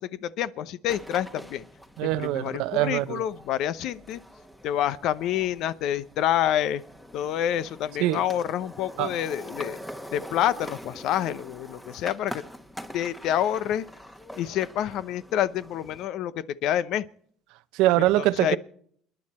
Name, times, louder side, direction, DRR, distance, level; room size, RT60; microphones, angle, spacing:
voice 1, 0.0-1.6 2.0-4.2 4.6-6.8 7.1-9.8 10.1-12.4 12.9-13.8 14.3-17.1 18.2-18.6, left 11 dB, 65° left, 0.7 m, -28 dB
sound 1, 0.9-16.1, equal, 5° left, 1.3 m, -44 dB
voice 2, 2.0-3.2 8.0-8.2 9.0-9.1 17.7-18.6, right 16 dB, 80° right, 0.7 m, -23 dB
29.0 x 10.0 x 4.3 m
cardioid pair, 110°, 0 cm